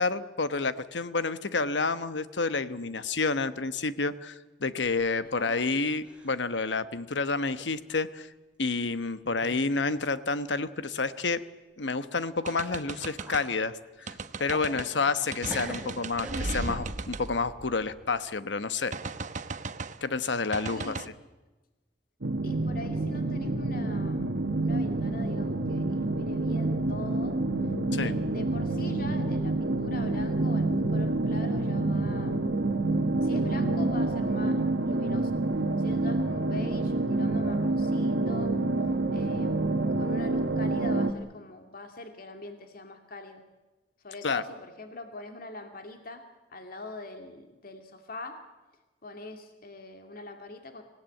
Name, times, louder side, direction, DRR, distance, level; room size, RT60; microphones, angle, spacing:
voice 1, 0.0-8.3 8.6-11.4 11.8-18.9 20.0-20.9 27.9-28.1 44.2-44.4, left 4 dB, 85° left, 12 dB, 1.1 m, -29 dB
sound 1, 5.0-5.7 6.0-6.5 6.9-7.0 7.9-8.0 8.7-8.8 9.2-9.7 9.9-10.0 12.6-12.7 13.0-13.5 14.0-15.2 15.5-16.8, right 1 dB, 5° right, 4.3 m, -44 dB
voice 2, 5.1-5.5 14.7-14.9 20.7-21.1 22.4-27.4 27.9-32.5 33.2-35.4 35.8-38.5 39.1-43.4 44.0-46.2 46.5-48.4 49.0-50.8, left 2 dB, 55° left, 5 dB, 2.3 m, -43 dB
sound 2, 12.5-13.5 14.1-14.9 15.3-18.2 18.9-20.0 20.5-21.1, right 3 dB, 45° right, 1.0 m, -36 dB
sound 3, 22.2-41.1, right 2 dB, 75° right, 1.4 m, -27 dB
26.0 x 17.0 x 9.1 m, 1.2 s
head